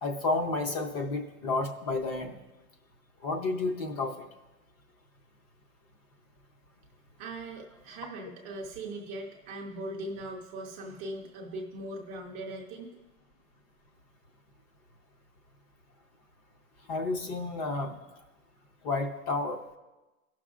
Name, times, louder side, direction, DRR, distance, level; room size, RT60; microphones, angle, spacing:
voice 1, 0.0-2.4 3.2-4.2 16.9-18.0 18.8-19.6, left 3 dB, 30° left, 5 dB, 0.6 m, -31 dB
voice 2, 7.2-12.9, right 1 dB, 20° right, -1 dB, 0.4 m, -40 dB
18.0 x 6.1 x 2.4 m, 1.1 s
supercardioid pair, 155°, 42 cm